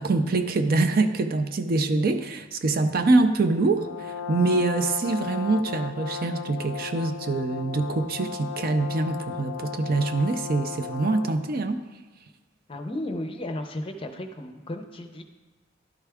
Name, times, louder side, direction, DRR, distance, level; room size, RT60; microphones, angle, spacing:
voice 1, 0.0-11.8, right 3 dB, 50° right, 7 dB, 0.5 m, -24 dB
Brass instrument, 3.7-11.5, left 7 dB, 85° left, 0.4 m, -36 dB
voice 2, 12.7-15.2, left 1 dB, 25° left, 6 dB, 0.6 m, -34 dB
12.0 x 4.6 x 3.5 m, 1.3 s
head